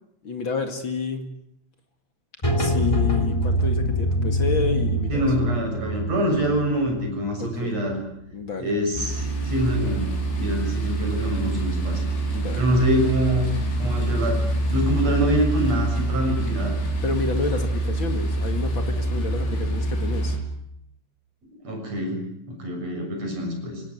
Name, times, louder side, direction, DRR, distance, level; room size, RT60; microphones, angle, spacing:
voice 1, 0.2-1.3 2.6-5.3 7.4-7.7 8.3-8.7 12.3-12.7 17.0-20.4, left 4 dB, 40° left, 6 dB, 1.8 m, -30 dB
sound 1, 2.4-8.1, equal, 15° left, 1.3 m, -24 dB
voice 2, 5.1-8.0 8.6-12.0 12.6-14.4 14.7-16.8 21.6-22.2 22.5-23.8, right 1 dB, 35° right, 2 dB, 7.8 m, -25 dB
sound 2, 8.9-20.4, right 2 dB, 70° left, 6.5 m, -25 dB
25.5 x 18.5 x 9.6 m, 0.79 s
omnidirectional pair, 5.0 m